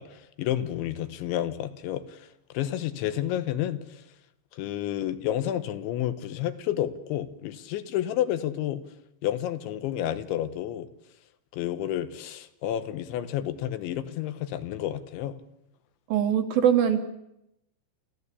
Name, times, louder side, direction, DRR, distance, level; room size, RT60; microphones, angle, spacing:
voice 1, 0.0-2.3 2.5-4.0 4.5-8.8 9.2-10.9 11.5-15.4, left 11 dB, 85° left, 11 dB, 3.6 m, -30 dB
voice 2, 16.1-17.0, right 9 dB, 65° right, 7 dB, 2.7 m, -22 dB
29.5 x 15.5 x 8.4 m, 0.85 s
omnidirectional pair, 5.2 m